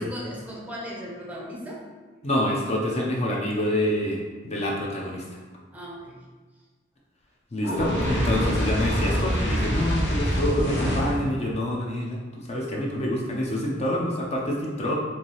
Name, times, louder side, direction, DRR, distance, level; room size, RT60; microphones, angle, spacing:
voice 1, 0.0-1.9 5.7-6.3, equal, 10° right, -3 dB, 0.6 m, -38 dB
voice 2, 2.2-5.2 7.5-12.2 12.5-15.0, left 1 dB, 35° left, -2 dB, 0.6 m, -27 dB
Fire, 7.6-11.3, equal, 65° left, 0.9 m, -25 dB
4.5 x 2.7 x 2.9 m, 1.4 s
head